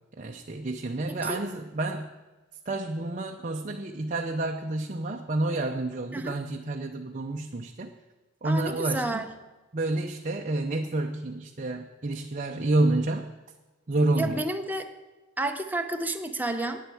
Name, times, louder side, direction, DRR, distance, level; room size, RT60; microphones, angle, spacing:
voice 1, 0.2-2.1 2.7-7.9 8.4-9.3 9.7-13.3 13.9-14.4, right 2 dB, 40° right, 3 dB, 0.6 m, -29 dB
voice 2, 1.1-1.4 6.1-6.4 8.4-9.3 14.2-14.9 15.4-16.8, right 1 dB, 10° right, 4 dB, 0.8 m, -30 dB
9.3 x 7.9 x 8.5 m, 1.2 s
head